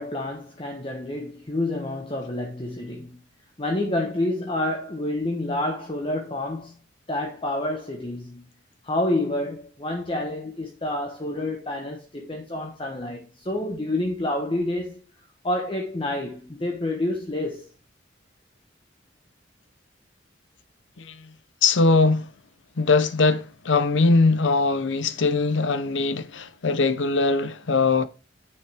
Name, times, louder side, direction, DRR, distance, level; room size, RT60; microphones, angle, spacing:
voice 1, 0.0-3.2 3.6-6.8 7.1-8.4 8.8-15.0 15.4-17.7, left 1 dB, 30° left, 1.1 m, -28 dB
voice 2, 21.0-21.3 21.6-22.3 22.8-28.0, left 3 dB, 80° left, 0.7 m, -21 dB
8.7 x 6.3 x 3.5 m
head